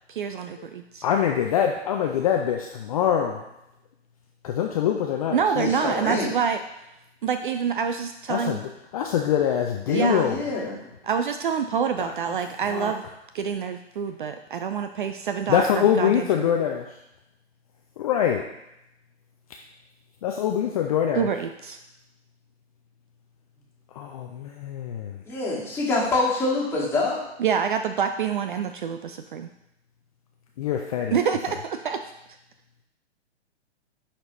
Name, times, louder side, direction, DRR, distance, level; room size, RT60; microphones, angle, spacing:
voice 1, 0.1-1.1 5.3-6.6 7.2-8.6 9.9-10.3 11.0-13.0 13.3-15.7 16.0-16.5 21.2-21.8 27.4-29.5 31.1-32.0, right 7 dB, 50° right, 8 dB, 0.4 m, -26 dB
voice 2, 1.0-3.5 4.4-5.7 8.3-10.4 12.0-12.9 15.5-17.0 18.0-18.4 20.2-21.3 23.9-25.2 30.6-31.2, left 9 dB, 35° left, 2 dB, 0.5 m, -24 dB
voice 3, 5.6-6.3 9.9-10.9 25.2-27.2, left 2 dB, 5° left, -7 dB, 1.9 m, -26 dB
10.5 x 4.3 x 3.0 m, 0.86 s
figure-of-eight pair, 115°, 34 cm